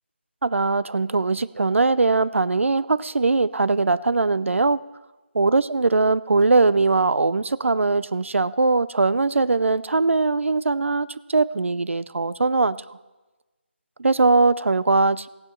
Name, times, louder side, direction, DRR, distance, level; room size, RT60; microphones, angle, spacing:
voice 1, 0.4-4.8 5.4-12.8 14.0-15.3, right 3 dB, 90° right, 17 dB, 0.4 m, -21 dB
15.5 x 8.9 x 4.3 m, 1.2 s
figure-of-eight pair, 165°, 7 cm